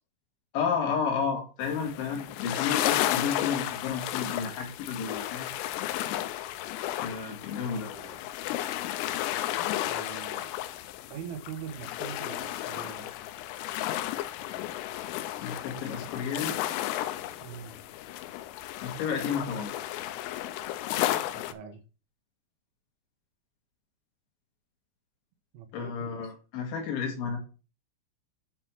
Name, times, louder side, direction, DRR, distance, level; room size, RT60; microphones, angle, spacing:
voice 1, 0.5-5.5 7.0-7.9 15.4-16.6 18.8-19.7 25.7-27.4, left 6 dB, 70° left, 1 dB, 4.3 m, -32 dB
sound 1, 1.6-21.5, left 13 dB, 85° left, 3.3 m, -33 dB
voice 2, 7.8-8.3 9.9-10.7 11.1-13.1 17.4-17.8 21.3-21.8 25.5-26.3, right 8 dB, 80° right, 5 dB, 3.8 m, -43 dB
9.7 x 4.1 x 6.0 m, 0.32 s
omnidirectional pair, 5.8 m